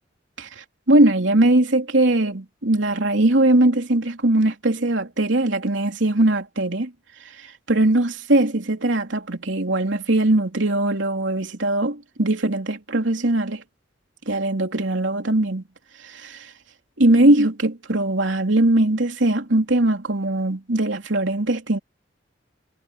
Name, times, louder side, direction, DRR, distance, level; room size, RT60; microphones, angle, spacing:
voice 1, 0.4-6.9 7.4-13.6 14.3-15.6 16.0-16.5 17.0-21.8, right 1 dB, 85° right, 3.1 m, -20 dB
head